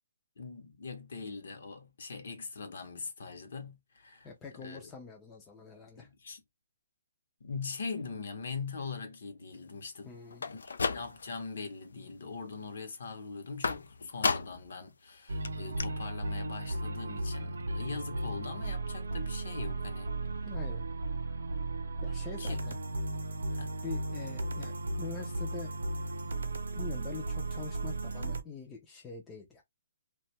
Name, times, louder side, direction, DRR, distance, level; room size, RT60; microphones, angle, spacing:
voice 1, 0.4-4.9 6.0-6.4 7.4-10.2 10.4-10.6 10.9-20.1 22.4-22.6 23.5-23.7, left 4 dB, 55° left, 0.7 m, -42 dB
voice 2, 4.2-6.1 10.0-10.4 20.5-20.8 22.0-22.8 23.8-25.7 26.7-29.6, left 4 dB, 5° left, 0.3 m, -45 dB
sound 1, 10.3-11.5 11.9-12.4 13.6-14.7 15.1-15.2 15.4-15.5 15.8-15.9, left 4 dB, 90° left, 0.4 m, -33 dB
sound 2, 15.3-28.4, right 2 dB, 80° right, 0.6 m, -35 dB
2.6 x 2.2 x 2.8 m
hypercardioid pair, 180°, 0 cm